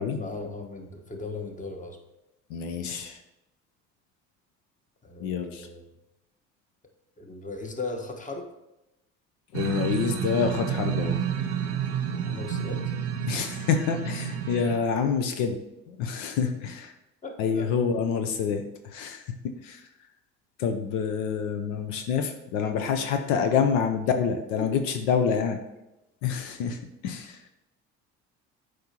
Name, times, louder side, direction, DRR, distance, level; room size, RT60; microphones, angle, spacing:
voice 1, 0.1-2.0 5.0-5.8 7.2-8.5 12.3-12.9 17.2-17.7, left 3 dB, 20° left, 3 dB, 1.2 m, -37 dB
voice 2, 2.5-3.2 5.2-5.7 9.5-11.2 13.3-15.6 15.9-16.9 17.4-19.9 20.6-25.6 26.2-27.4, left 6 dB, 80° left, 6 dB, 0.7 m, -27 dB
sound 1, 9.5-14.8, right 8 dB, 90° right, 0.8 m, -30 dB
7.8 x 5.0 x 2.9 m, 0.92 s
hypercardioid pair, 65°, 35 cm